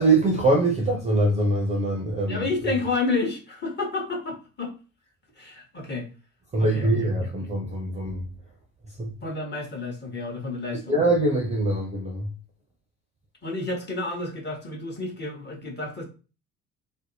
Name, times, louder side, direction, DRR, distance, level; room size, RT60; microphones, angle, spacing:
voice 1, 0.0-2.5 6.5-8.3 9.0-9.1 10.9-12.3, right 2 dB, 15° right, 0.6 m, -23 dB
voice 2, 2.3-4.7 5.4-6.1 6.6-6.9 7.2-7.5 9.2-11.0 13.4-16.0, left 3 dB, 25° left, 1.0 m, -30 dB
2.6 x 2.0 x 2.7 m
figure-of-eight pair, 50°, 43 cm